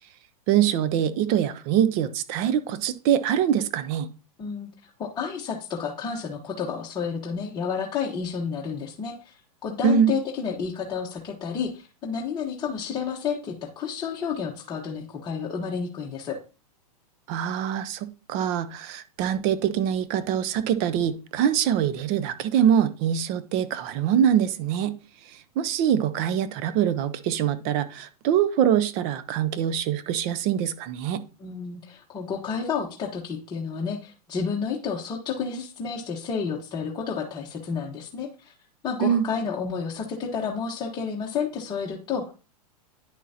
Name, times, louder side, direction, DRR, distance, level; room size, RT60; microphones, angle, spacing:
voice 1, 0.5-4.1 9.8-10.1 17.3-24.9 25.3-31.2 39.0-39.3, right 9 dB, 40° right, 0.7 m, -24 dB
voice 2, 4.4-4.7 5.0-9.3 9.6-16.4 31.4-38.5 38.8-42.3, left 6 dB, 20° left, 1.3 m, -30 dB
9.9 x 6.1 x 2.9 m
hypercardioid pair, 125°, 20 cm